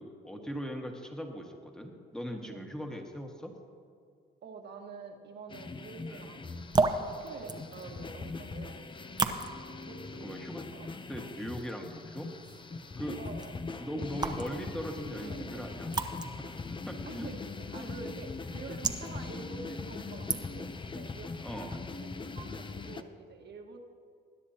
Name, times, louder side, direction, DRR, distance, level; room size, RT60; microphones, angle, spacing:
voice 1, 0.0-3.5 6.1-6.3 10.2-10.7 11.1-12.3 13.0-13.2 13.8-15.9 16.4-17.3 17.7-17.9 21.4-21.9, equal, 5° left, 2 dB, 1.6 m, -40 dB
voice 2, 4.4-8.9 9.9-10.4 10.7-10.9 13.2-13.6 15.2-15.7 17.0-23.8, right 4 dB, 60° right, 3 dB, 1.5 m, -47 dB
sound 1, 5.5-23.0, left 4 dB, 25° left, 0.6 m, -41 dB
sound 2, 6.4-20.8, right 3 dB, 20° right, 0.8 m, -37 dB
20.5 x 10.0 x 2.9 m, 2.2 s
cardioid pair, 90°, 20 cm